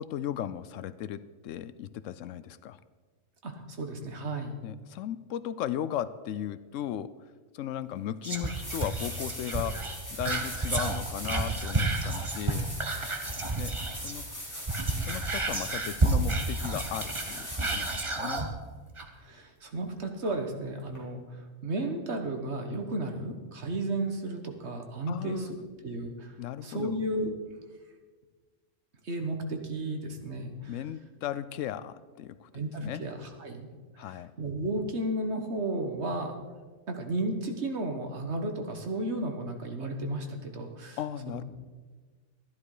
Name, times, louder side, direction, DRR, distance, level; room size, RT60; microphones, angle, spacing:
voice 1, 0.0-2.8 4.6-7.1 7.5-12.7 13.6-14.3 15.0-18.5 25.1-25.6 26.4-26.9 30.7-32.5 32.8-33.0 34.0-34.3 41.0-41.4, left 11 dB, 80° left, 16 dB, 0.9 m, -36 dB
voice 2, 3.8-4.5 19.2-21.2 21.6-25.5 25.8-26.3 26.6-27.3 29.0-30.7 32.5-33.1 33.4-33.7 34.4-36.4 36.9-41.0 41.3-41.4, right 2 dB, 60° right, 4 dB, 1.6 m, -33 dB
sound 1, 7.9-8.0 8.4-18.2 20.9-21.0, equal, 15° left, 3.9 m, -41 dB
Whispering, 8.2-14.2 14.6-18.5 19.0-19.1, right 2 dB, 25° right, 1.1 m, -30 dB
13.0 x 11.5 x 4.9 m, 1.4 s
omnidirectional pair, 1.3 m